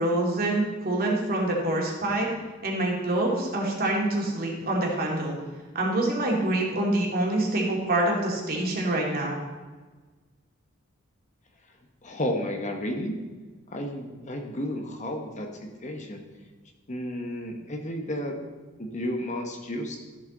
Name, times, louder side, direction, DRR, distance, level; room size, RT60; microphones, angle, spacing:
voice 1, 0.0-2.3 2.6-5.3 5.7-9.4, right 1 dB, 45° right, -2 dB, 2.4 m, -26 dB
voice 2, 12.0-13.2 13.7-16.2 16.9-18.3 18.8-20.0, left 1 dB, 35° left, 3 dB, 1.1 m, -32 dB
13.5 x 7.2 x 3.9 m, 1.3 s
head